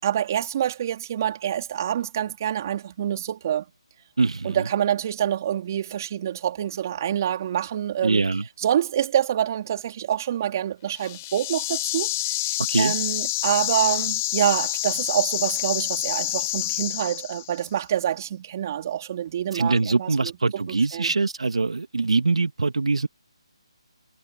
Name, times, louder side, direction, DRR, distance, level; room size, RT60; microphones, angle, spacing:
voice 1, 0.0-3.7 4.4-8.3 8.6-12.1 12.5-21.1, right 10 dB, 35° right, 3.7 m, -26 dB
voice 2, 4.2-4.7 8.0-8.4 12.7-12.9 19.5-23.1, right 3 dB, 80° right, 1.9 m, -23 dB
sound 1, 10.9-17.6, left 17 dB, 25° left, 3.4 m, -27 dB
figure-of-eight pair, 160°, 3 cm